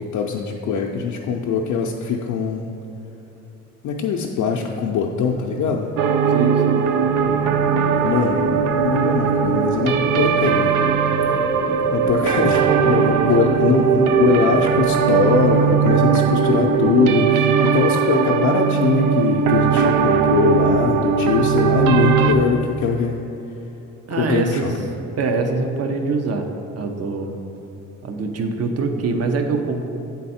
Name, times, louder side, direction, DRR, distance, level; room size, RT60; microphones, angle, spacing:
voice 1, 0.1-2.7 3.8-5.9 8.0-10.8 11.9-23.3 24.2-24.9, left 5 dB, 75° left, 0 dB, 0.5 m, -22 dB
sound 1, 6.0-22.4, right 6 dB, 85° right, 0.5 m, -19 dB
voice 2, 6.3-6.9 24.1-24.7 25.2-26.5 26.7-27.3 28.0-29.9, right 4 dB, 55° right, 5 dB, 0.7 m, -23 dB
sound 2, 7.1-17.0, left 1 dB, 20° left, 0.6 m, -32 dB
8.4 x 3.9 x 4.2 m, 3.0 s
cardioid pair, 90°, 30 cm